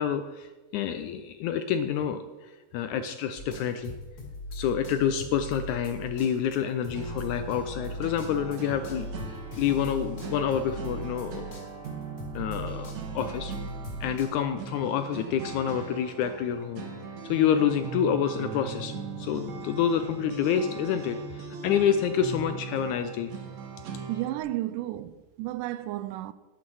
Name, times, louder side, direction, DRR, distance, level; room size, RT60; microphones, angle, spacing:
voice 1, 0.0-3.9 4.5-11.6 12.4-13.5 14.0-16.8 17.3-23.3, left 8 dB, 80° left, 1.8 m, -28 dB
sound 1, 3.4-11.9 12.2-14.2, equal, 30° left, 2.4 m, -39 dB
sound 2, 6.9-24.4, right 5 dB, 60° right, 2.6 m, -40 dB
voice 2, 24.1-26.3, right 15 dB, 80° right, 2.1 m, -32 dB
11.5 x 10.5 x 4.8 m
omnidirectional pair, 3.9 m